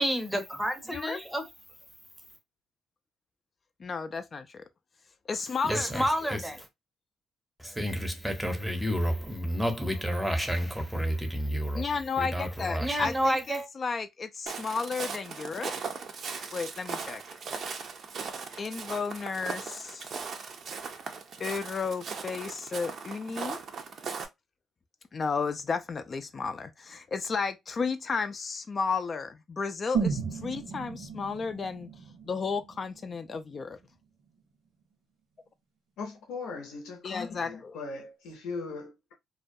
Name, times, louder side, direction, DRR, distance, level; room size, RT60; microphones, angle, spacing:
voice 1, 0.0-1.5 5.6-6.7 7.6-11.8 12.2-13.7, equal, 5° right, 0.7 m, -29 dB
voice 2, 3.8-4.6 5.3-6.0 11.7-15.7 16.5-17.2 18.6-20.1 21.4-23.6 25.1-31.9 32.2-33.8 37.0-37.8, left 5 dB, 40° left, 0.3 m, -33 dB
Walk footsteps, 14.5-24.3, right 5 dB, 55° right, 0.5 m, -38 dB
sound 1, 29.9-33.9 34.2-34.3, right 6 dB, 85° right, 1.0 m, -35 dB
voice 3, 36.0-39.1, left 4 dB, 90° left, 0.6 m, -39 dB
2.3 x 2.2 x 2.5 m
cardioid pair, 95°, 0 cm